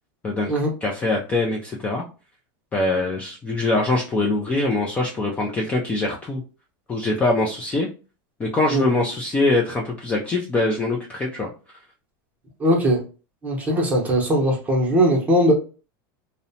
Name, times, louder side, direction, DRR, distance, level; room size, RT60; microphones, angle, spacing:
voice 1, 0.8-2.0 2.7-6.4 6.9-7.9 8.4-11.5, left 2 dB, 10° left, -1 dB, 0.3 m, -23 dB
voice 2, 12.6-13.0 13.4-15.5, equal, 15° right, -1 dB, 0.8 m, -19 dB
2.7 x 2.1 x 2.7 m, 0.34 s
supercardioid pair, 150°, 11 cm